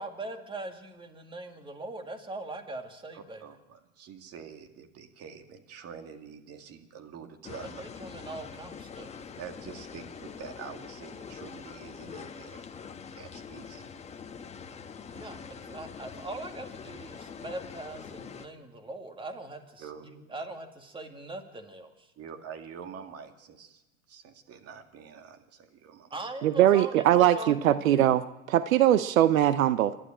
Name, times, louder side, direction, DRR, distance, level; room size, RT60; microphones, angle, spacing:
voice 1, 0.0-3.4 7.8-9.2 15.1-22.1 26.1-28.1, right 2 dB, 10° right, 6 dB, 2.3 m, -41 dB
voice 2, 3.1-7.8 9.4-12.7 13.1-13.9 19.8-20.1 20.4-20.5 22.2-23.8 24.1-26.1, right 7 dB, 35° right, 6 dB, 2.4 m, -46 dB
sound 1, 7.4-18.5, left 6 dB, 15° left, 1.2 m, -44 dB
voice 3, 26.4-28.2 28.5-30.0, right 12 dB, 75° right, 14 dB, 0.8 m, -21 dB
27.5 x 12.0 x 8.9 m, 1.0 s
hypercardioid pair, 110°, 41 cm